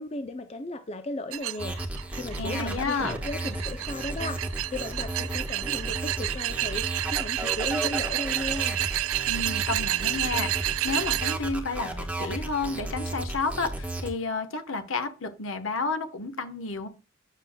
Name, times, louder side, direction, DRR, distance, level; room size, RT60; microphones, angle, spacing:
voice 1, 0.0-8.8, left 2 dB, 30° left, 8 dB, 0.5 m, -36 dB
sound 1, 1.3-11.4, right 16 dB, 75° right, 0.3 m, -30 dB
sound 2, 1.6-14.1, right 1 dB, 5° right, 1.2 m, -34 dB
voice 2, 2.4-3.1 9.3-16.9, left 3 dB, 70° left, 8 dB, 1.1 m, -31 dB
9.7 x 6.6 x 2.2 m, 0.33 s
head